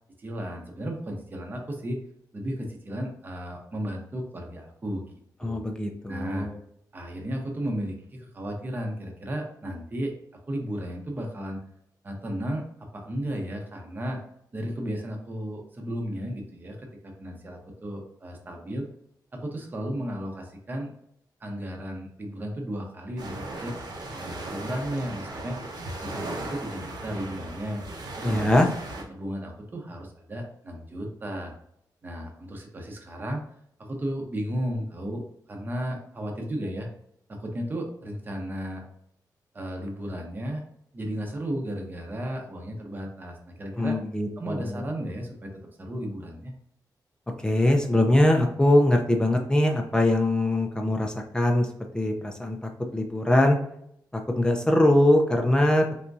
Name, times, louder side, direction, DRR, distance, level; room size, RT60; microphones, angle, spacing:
voice 1, 0.2-2.0 2.3-5.0 5.4-5.6 6.1-6.5 6.9-10.1 10.5-11.6 12.0-12.7 12.9-14.2 14.5-18.9 19.3-20.9 21.4-23.7 24.1-25.6 26.0-27.8 28.2-28.5 29.1-31.5 32.0-33.4 33.8-35.2 35.5-36.9 37.3-38.8 39.5-40.6 40.9-44.0 44.4-46.5, equal, 25° right, 1 dB, 0.8 m, -34 dB
voice 2, 5.4-6.5 28.2-28.7 43.8-44.8 47.4-51.7 51.9-53.6 54.1-56.0, left 1 dB, 10° left, 3 dB, 0.5 m, -22 dB
sound 1, 23.2-29.0, right 2 dB, 75° right, 0.9 m, -37 dB
4.2 x 3.5 x 2.6 m, 0.72 s
wide cardioid pair, 160°, 7 cm